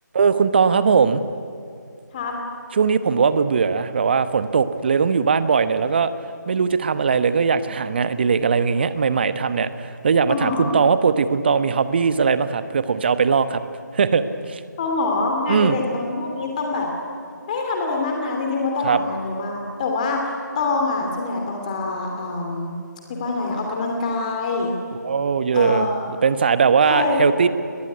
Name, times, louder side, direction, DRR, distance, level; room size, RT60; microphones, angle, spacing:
voice 1, 0.1-1.2 2.7-6.1 6.5-13.6 13.9-14.6 15.5-15.8 18.8-19.0 25.0-25.9 26.2-27.5, right 5 dB, 30° right, 12 dB, 1.1 m, -19 dB
voice 2, 10.3-10.7 14.8-16.9 17.5-22.7 23.1-24.7 25.5-26.1 26.9-27.2, left 3 dB, 25° left, 1 dB, 2.8 m, -25 dB
22.0 x 20.5 x 9.7 m, 2.4 s
figure-of-eight pair, 155°, 10 cm